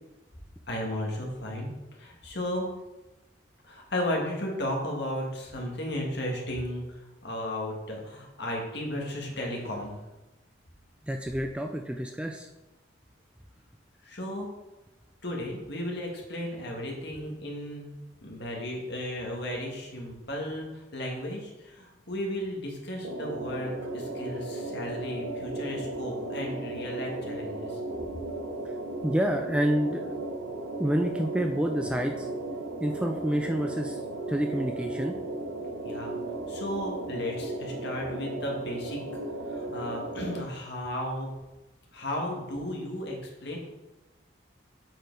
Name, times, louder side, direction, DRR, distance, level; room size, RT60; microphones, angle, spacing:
voice 1, 0.7-1.7 2.0-2.7 3.7-10.0 14.0-14.5 15.2-17.9 18.2-27.8 35.8-36.2 36.5-39.0 39.5-41.3 41.9-43.6, left 1 dB, 55° left, -1 dB, 1.7 m, -34 dB
voice 2, 11.1-12.5 29.0-30.1 30.8-32.3 32.8-34.0 34.3-35.1, equal, 5° right, 3 dB, 0.3 m, -28 dB
sound 1, 23.0-40.4, right 2 dB, 80° right, 0.7 m, -36 dB
7.6 x 4.9 x 4.6 m, 1.0 s
head